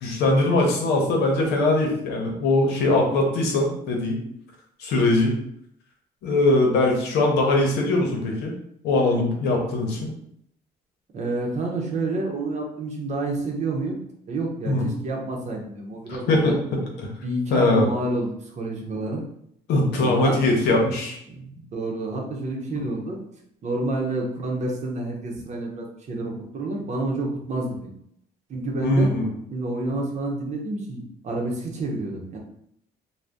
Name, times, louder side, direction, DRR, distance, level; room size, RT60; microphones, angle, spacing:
voice 1, 0.0-4.2 4.8-5.4 6.2-8.5 8.8-10.1 14.7-14.9 16.3-17.1 17.5-17.9 19.7-21.2 22.7-22.8 28.8-29.3, left 2 dB, 80° left, 0 dB, 0.8 m, -21 dB
voice 2, 11.1-14.0 14.3-16.6 17.2-19.2 19.9-20.4 21.3-23.2 23.6-27.9 28.5-29.1 29.5-32.4, right 2 dB, 45° right, 0 dB, 0.7 m, -29 dB
2.6 x 2.1 x 3.4 m, 0.71 s
cardioid pair, 110°, 17 cm